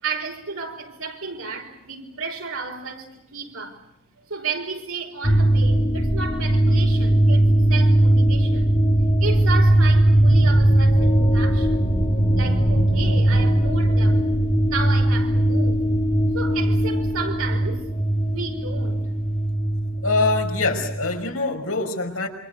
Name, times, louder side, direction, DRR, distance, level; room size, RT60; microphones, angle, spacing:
voice 1, 0.0-3.8 4.2-8.7 9.2-12.0 12.3-15.8 16.3-17.9 18.2-19.1, right 4 dB, 80° right, 5.4 m, -33 dB
sound 1, 5.2-21.1, right 1 dB, 25° left, 3.3 m, -19 dB
sound 2, 10.0-14.4, equal, 45° left, 3.7 m, -34 dB
voice 2, 20.0-22.3, left 3 dB, 75° left, 5.2 m, -24 dB
28.0 x 25.5 x 8.1 m
head